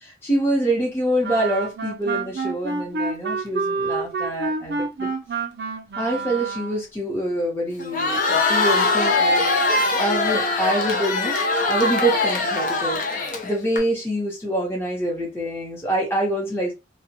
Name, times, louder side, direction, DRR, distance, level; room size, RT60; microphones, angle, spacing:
voice 1, 0.2-5.1 6.0-16.8, right 1 dB, 15° left, 0.7 m, -26 dB
Wind instrument woodwind instrument, 1.2-6.9, right 3 dB, 65° right, 0.5 m, -28 dB
Crowd, 7.8-13.8, left 3 dB, 45° left, 0.5 m, -22 dB
2.2 x 2.0 x 2.8 m
head